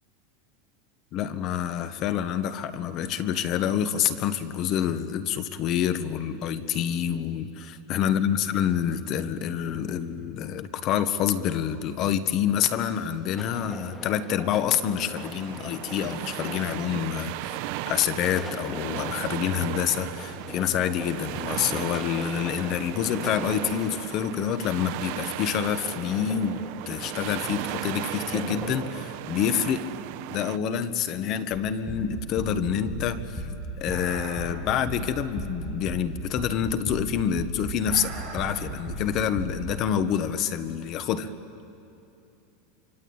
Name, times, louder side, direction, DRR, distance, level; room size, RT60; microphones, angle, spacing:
voice 1, 1.1-17.6 17.9-29.9 30.3-33.5 33.8-41.3, left 9 dB, 40° left, 11 dB, 1.2 m, -27 dB
sound 1, 13.4-28.9, left 2 dB, 10° left, 1.9 m, -43 dB
sound 2, 15.1-30.6, right 16 dB, 55° right, 0.7 m, -36 dB
sound 3, 31.5-39.6, right 1 dB, 15° right, 7.7 m, -35 dB
26.5 x 25.0 x 8.8 m, 2.8 s
supercardioid pair, 150°, 0 cm